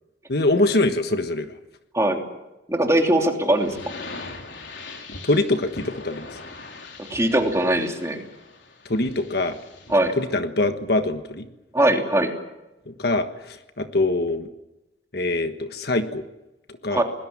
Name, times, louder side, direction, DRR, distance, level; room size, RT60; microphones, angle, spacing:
voice 1, 0.3-1.5 5.2-6.3 8.8-9.6 10.2-11.4 12.9-14.5 15.1-16.2 16.8-17.0, left 2 dB, 60° left, 8 dB, 1.5 m, -23 dB
voice 2, 2.7-3.8 7.1-8.2 9.9-10.1 11.7-12.3 16.9-17.0, right 1 dB, 15° right, 2 dB, 3.1 m, -20 dB
sound 1, 3.5-10.2, left 3 dB, 85° left, 3.9 m, -41 dB
26.5 x 20.5 x 7.4 m, 0.96 s
head